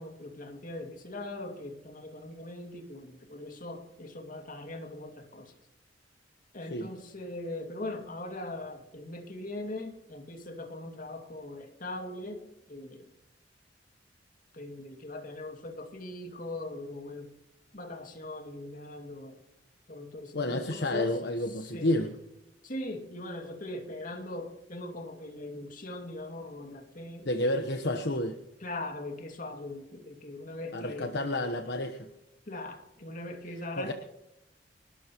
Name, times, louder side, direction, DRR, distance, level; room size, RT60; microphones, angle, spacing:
voice 1, 0.0-5.5 6.5-13.1 14.5-17.3 17.7-19.4 19.9-21.1 21.6-22.0 22.6-27.3 28.6-31.2 32.5-33.9, left 1 dB, 50° left, 4 dB, 2.3 m, -40 dB
voice 2, 20.3-22.1 27.2-28.4 30.7-32.1 33.8-33.9, left 1 dB, 65° left, 5 dB, 1.1 m, -30 dB
30.0 x 13.0 x 3.1 m, 0.87 s
head